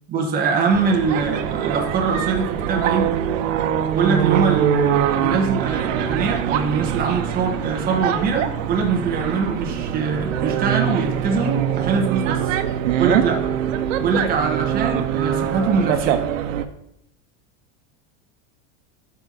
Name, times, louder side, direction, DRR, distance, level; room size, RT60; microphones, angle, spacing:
voice 1, 0.1-3.1 3.9-12.5 13.0-13.4 14.0-16.2, right 4 dB, 25° right, 1 dB, 1.2 m, -23 dB
sound 1, 0.7-16.6, right 10 dB, 80° right, 0.9 m, -23 dB
12.5 x 4.6 x 4.1 m, 0.79 s
supercardioid pair, 155°, 39 cm